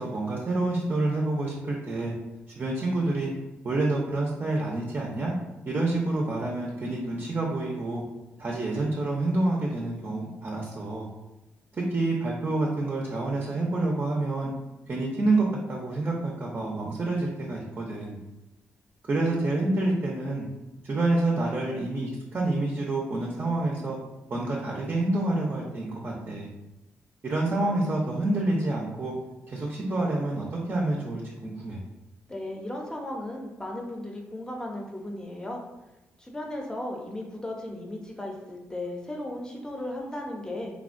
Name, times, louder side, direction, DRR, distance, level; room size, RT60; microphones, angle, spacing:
voice 1, 0.0-2.1 2.6-3.3 3.6-5.3 5.7-8.0 8.4-11.1 11.7-14.5 14.9-18.2 19.1-20.5 20.8-24.0 24.3-26.5 27.2-29.1 29.5-31.8, right 2 dB, 40° right, -2 dB, 0.5 m, -28 dB
voice 2, 32.3-35.6 36.2-40.8, left 1 dB, 15° left, 0 dB, 0.6 m, -36 dB
3.3 x 2.1 x 2.5 m, 1.0 s
cardioid pair, 90°, 5 cm